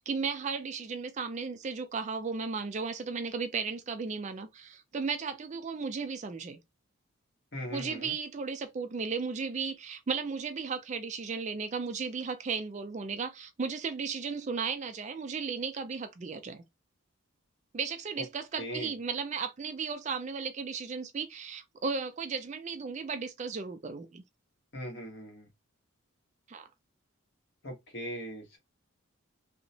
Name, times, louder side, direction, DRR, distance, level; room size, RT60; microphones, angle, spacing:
voice 1, 0.1-6.6 7.7-16.6 17.7-24.2 26.5-26.7, right 5 dB, 35° right, 0.3 m, -35 dB
voice 2, 7.5-8.1 18.6-18.9 24.7-25.5 27.6-28.6, equal, 50° left, 1.2 m, -39 dB
2.8 x 2.1 x 2.6 m
head